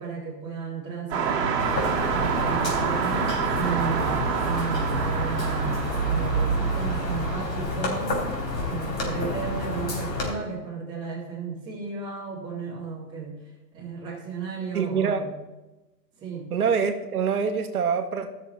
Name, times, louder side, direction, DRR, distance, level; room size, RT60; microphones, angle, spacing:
voice 1, 0.0-1.6 2.1-8.3 8.6-13.4 13.7-15.4 16.2-16.5, right 5 dB, 10° right, -6 dB, 1.8 m, -34 dB
sound 1, 1.1-7.4, right 6 dB, 40° right, 2.2 m, -26 dB
sound 2, 1.6-10.3, left 3 dB, 80° left, 3.5 m, -30 dB
voice 2, 14.7-15.3 16.5-18.3, right 6 dB, 60° right, 6 dB, 1.3 m, -25 dB
14.0 x 6.5 x 4.0 m, 1.1 s
hypercardioid pair, 170°, 50 cm